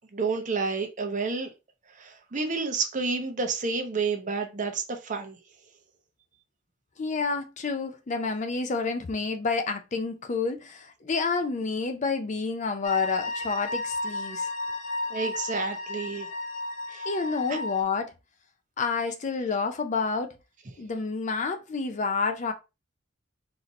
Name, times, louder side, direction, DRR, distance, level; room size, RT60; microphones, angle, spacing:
voice 1, 0.1-1.5 1.9-5.4 15.1-16.3 16.9-17.1 17.5-17.6, right 4 dB, 40° right, 0.8 m, -30 dB
voice 2, 7.0-14.5 17.0-18.1 18.8-20.4 20.8-22.5, left 4 dB, 35° left, 0.4 m, -29 dB
sound 1, 12.8-17.8, left 2 dB, 65° left, 0.8 m, -33 dB
4.1 x 2.7 x 3.0 m
head